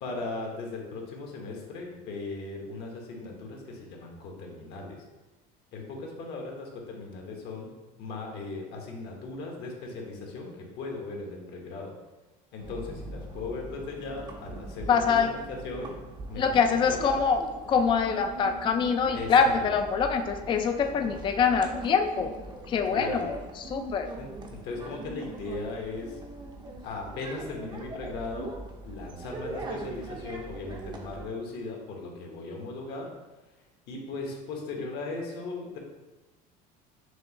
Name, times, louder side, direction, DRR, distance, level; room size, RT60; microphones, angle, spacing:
voice 1, 0.0-5.0 5.7-7.7 8.0-11.9 12.5-15.9 16.3-17.0 19.1-19.5 22.9-23.3 24.2-26.2 26.8-28.5 28.8-33.1 33.9-35.8, left 3 dB, 60° left, 0 dB, 1.1 m, -38 dB
sound 1, 12.6-31.3, right 2 dB, 25° right, 0.6 m, -41 dB
voice 2, 14.9-15.3 16.4-17.4 17.7-22.3 22.7-24.1, left 6 dB, 25° left, 6 dB, 0.4 m, -24 dB
6.2 x 2.5 x 2.9 m, 1.1 s
supercardioid pair, 115°, 19 cm